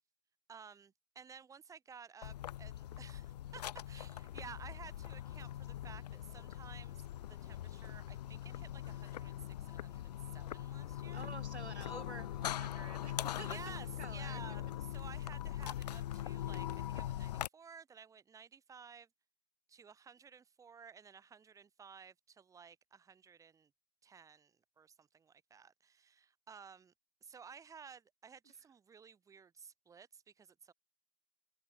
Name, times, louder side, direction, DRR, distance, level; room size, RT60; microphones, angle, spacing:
voice 1, 0.5-11.3 13.4-19.1 19.7-23.7 24.0-26.9 27.2-30.7, right 6 dB, 10° right, 6.6 m, -55 dB
sound 1, 2.2-17.5, left 12 dB, 40° left, 1.0 m, -42 dB
voice 2, 11.1-13.6 14.0-14.4, right 3 dB, 85° right, 2.6 m, -49 dB
figure-of-eight pair, 130°, 33 cm